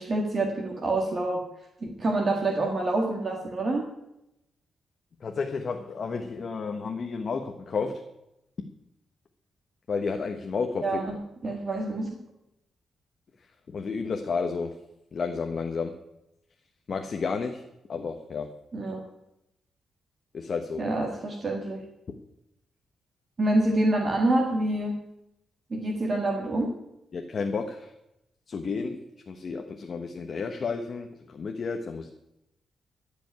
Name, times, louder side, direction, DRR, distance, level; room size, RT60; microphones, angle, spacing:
voice 1, 0.0-1.4 2.0-3.8 10.8-12.1 18.7-19.0 20.8-21.8 23.4-25.0 25.7-26.7, right 2 dB, 35° right, 1 dB, 1.8 m, -27 dB
voice 2, 5.2-8.0 9.9-11.0 13.7-14.7 15.1-15.9 16.9-17.6 17.9-18.5 20.3-20.8 27.1-27.9 28.5-29.0 29.3-32.1, left 5 dB, 45° left, 4 dB, 1.0 m, -31 dB
15.0 x 5.3 x 9.4 m, 0.86 s
cardioid pair, 125°, 0 cm